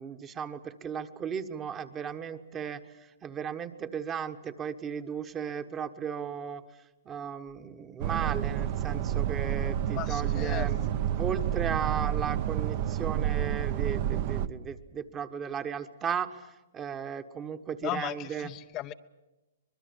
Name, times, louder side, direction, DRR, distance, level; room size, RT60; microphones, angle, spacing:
voice 1, 0.0-2.8 3.2-6.6 7.0-10.8 11.2-18.5, right 7 dB, 20° right, 9 dB, 1.4 m, -35 dB
sound 1, 8.0-14.5, right 10 dB, 45° right, 1.1 m, -29 dB
voice 2, 10.0-10.7 17.8-18.9, left 15 dB, 30° left, 9 dB, 0.7 m, -36 dB
24.5 x 21.0 x 8.3 m, 1.0 s
hypercardioid pair, 130°, 0 cm